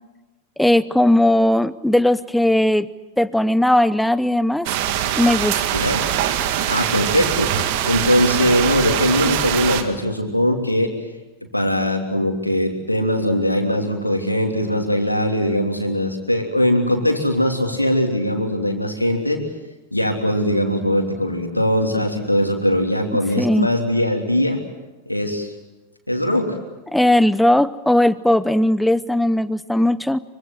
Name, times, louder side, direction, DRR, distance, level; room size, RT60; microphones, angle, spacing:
voice 1, 0.6-2.9 3.2-4.7 5.2-5.6 23.4-23.7 26.9-30.2, left 1 dB, 5° left, 17 dB, 0.8 m, -17 dB
sound 1, 4.6-9.8, right 11 dB, 45° right, 2.1 m, -22 dB
voice 2, 6.7-7.5 7.8-10.9 11.5-19.4 19.9-24.6 25.1-25.5 26.1-26.6, equal, 85° left, 4 dB, 3.2 m, -20 dB
25.0 x 24.5 x 7.5 m, 1.1 s
figure-of-eight pair, 90°, 0 cm